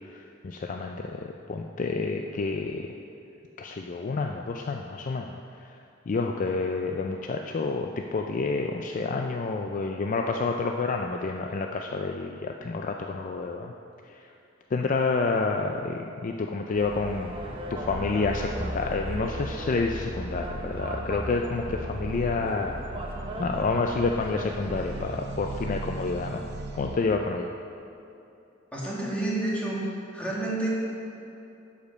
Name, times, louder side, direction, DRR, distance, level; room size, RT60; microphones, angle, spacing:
voice 1, 0.1-2.9 3.6-5.3 6.1-13.7 14.1-14.2 14.7-17.4 17.7-22.7 23.4-26.4 26.7-27.5, left 4 dB, 40° left, 3 dB, 0.4 m, -29 dB
sound 1, 16.7-25.1, right 1 dB, 30° right, 0.9 m, -39 dB
sound 2, 17.8-27.0, right 1 dB, 60° right, 0.7 m, -37 dB
voice 2, 28.7-29.8 30.1-30.7, right 2 dB, 5° left, -6 dB, 2.1 m, -29 dB
11.5 x 5.2 x 5.3 m, 2.7 s
head